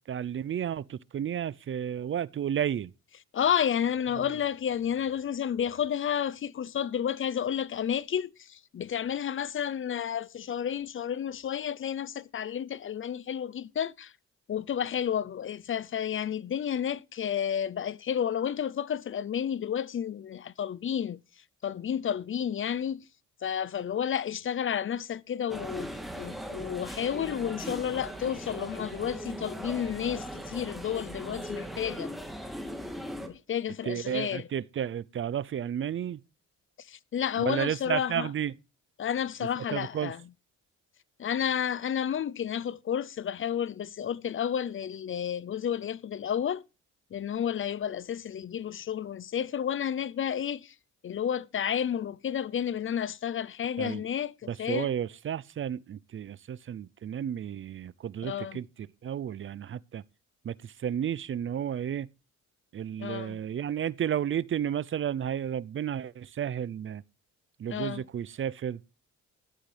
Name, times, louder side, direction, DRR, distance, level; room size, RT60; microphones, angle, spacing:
voice 1, 0.1-2.9 4.2-4.3 33.9-36.2 37.4-38.5 39.7-40.1 53.8-54.0 54.5-60.0 60.4-62.1 62.7-67.0 67.6-68.8, right 9 dB, 40° right, 0.5 m, -32 dB
voice 2, 3.3-14.1 14.5-21.2 21.6-23.0 23.4-32.1 33.2-34.5 36.8-38.3 39.0-40.3 41.2-46.6 47.1-50.7 51.0-54.9 58.2-58.6 63.0-63.4 67.7-68.1, left 9 dB, 45° left, 0.6 m, -31 dB
sound 1, 25.5-33.3, equal, ahead, 2.9 m, -39 dB
14.5 x 11.5 x 3.3 m
cardioid pair, 90°, 30 cm